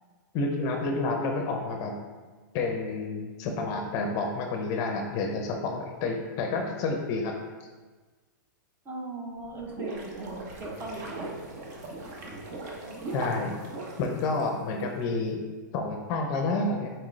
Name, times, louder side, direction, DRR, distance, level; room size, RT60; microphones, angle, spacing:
voice 1, 0.3-1.9 2.5-7.4 13.1-13.6 14.0-15.4 15.7-16.9, left 3 dB, 30° left, 3 dB, 0.5 m, -29 dB
voice 2, 8.9-11.4, right 2 dB, 20° right, 0 dB, 0.6 m, -39 dB
sound 1, 9.4-14.8, right 2 dB, 50° right, 0.9 m, -38 dB
4.4 x 3.6 x 3.1 m, 1.3 s
hypercardioid pair, 145°, 11 cm